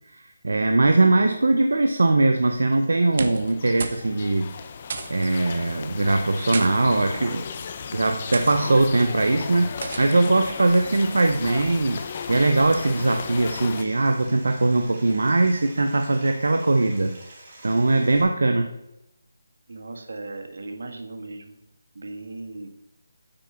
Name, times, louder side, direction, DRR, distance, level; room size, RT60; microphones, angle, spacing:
voice 1, 0.1-4.5 5.1-7.5 7.9-12.0 12.3-17.1 17.6-18.7, right 2 dB, 80° right, 6 dB, 0.7 m, -21 dB
sound 1, 2.7-13.8, left 6 dB, 35° left, 0.6 m, -36 dB
sound 2, 3.0-3.5 3.8-4.1 4.3-4.4 4.9-5.3 6.2-6.7 7.5-7.7 8.3-8.6 9.8-10.2, right 4 dB, 50° right, 0.8 m, -32 dB
Stream, 10.7-18.2, right 2 dB, 30° right, 2.5 m, -47 dB
voice 2, 19.7-21.6 21.9-22.7, right 2 dB, 65° right, 5 dB, 1.4 m, -37 dB
8.8 x 4.7 x 5.6 m, 0.88 s
figure-of-eight pair, 165°, 0 cm